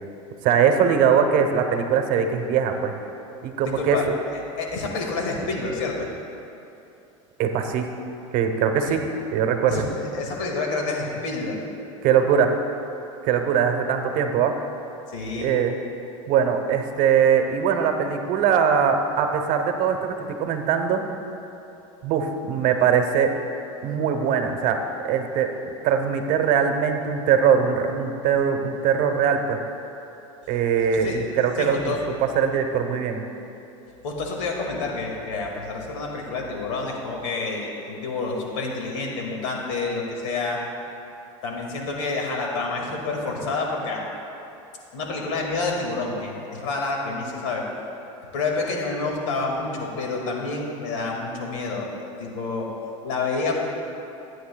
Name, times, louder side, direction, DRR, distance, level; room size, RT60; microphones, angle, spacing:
voice 1, 0.4-2.9 3.4-4.0 7.4-7.9 8.3-9.0 9.3-9.8 12.0-12.5 13.2-14.6 15.4-15.8 16.3-21.0 22.0-23.4 23.8-25.5 25.8-29.6 30.5-33.2, right 7 dB, 55° right, 6 dB, 0.9 m, -21 dB
voice 2, 3.8-6.1 8.8-9.0 9.7-11.6 15.1-15.5 30.9-31.2 31.6-32.0 34.0-40.6 41.4-44.0 44.9-47.6 48.3-51.9 52.2-52.7 53.0-53.6, left 3 dB, 75° left, 0 dB, 2.1 m, -28 dB
16.0 x 9.1 x 2.3 m, 2.8 s
hypercardioid pair, 100°, 16 cm